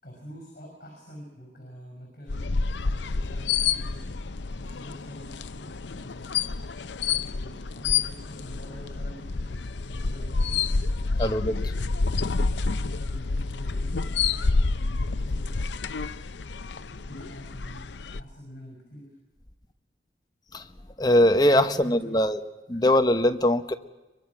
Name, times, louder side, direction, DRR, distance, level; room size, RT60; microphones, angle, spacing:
voice 1, 0.0-2.5 2.8-6.3 7.1-10.7 12.5-14.7 14.9-16.1 16.9-17.9 18.2-19.2 21.4-22.2 22.7-22.8, equal, 50° left, 5.9 m, -46 dB
sound 1, 2.3-18.2, left 4 dB, 80° left, 0.7 m, -28 dB
voice 2, 11.2-11.7 20.5-20.7 21.0-22.4 22.7-23.7, left 1 dB, 20° left, 1.0 m, -21 dB
24.0 x 22.5 x 6.0 m
head